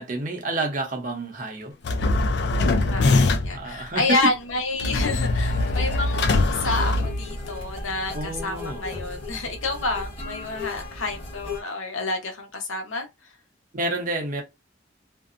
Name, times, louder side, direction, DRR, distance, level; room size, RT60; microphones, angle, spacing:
voice 1, 0.0-1.7 3.5-4.2 8.1-8.8 13.7-14.4, right 2 dB, 40° right, 0.7 m, -29 dB
sound 1, 1.8-3.7 4.8-7.6, left 2 dB, 55° left, 0.4 m, -22 dB
voice 2, 2.6-13.1, left 2 dB, 85° left, 0.8 m, -29 dB
sound 2, 5.0-11.6, left 2 dB, 30° left, 1.1 m, -36 dB
2.6 x 2.0 x 2.4 m
head